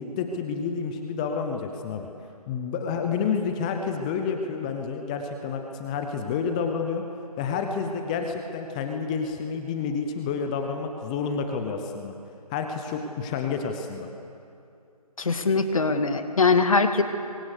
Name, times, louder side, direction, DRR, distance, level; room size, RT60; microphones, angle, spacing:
voice 1, 0.0-2.1 2.5-7.0 7.4-12.1 12.5-14.1, left 5 dB, 10° left, 5 dB, 0.8 m, -29 dB
voice 2, 15.2-17.0, left 4 dB, 60° left, 8 dB, 2.0 m, -22 dB
26.5 x 24.0 x 6.7 m, 2.5 s
figure-of-eight pair, 160°, 20 cm